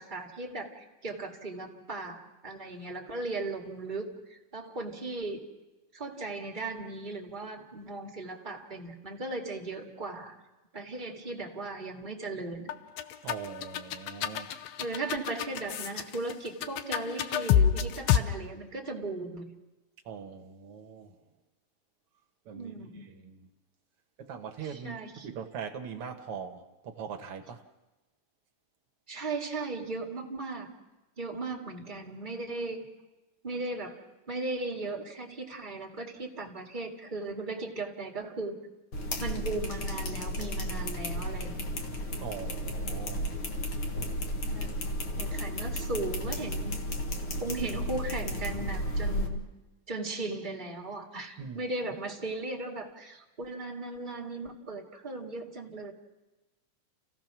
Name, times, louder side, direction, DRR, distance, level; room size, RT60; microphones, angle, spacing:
voice 1, 0.0-5.4 5.9-10.3 10.7-12.7 14.8-19.5 22.5-23.0 24.6-25.3 29.1-30.7 31.2-32.9 33.4-34.0 34.3-38.6 39.2-41.5 44.4-44.9 45.2-46.8 47.4-49.5 49.9-55.9, right 2 dB, 20° right, 1 dB, 1.5 m, -37 dB
sound 1, 12.7-18.2, left 9 dB, 70° left, 1.7 m, -27 dB
voice 2, 13.2-14.5 20.1-21.2 22.5-22.7 23.0-23.5 24.2-27.6 42.2-43.3 51.4-51.6, right 7 dB, 55° right, 5 dB, 2.0 m, -41 dB
sound 2, 38.9-49.3, equal, 45° left, 2.2 m, -33 dB
29.5 x 16.5 x 6.1 m, 1.1 s
omnidirectional pair, 3.7 m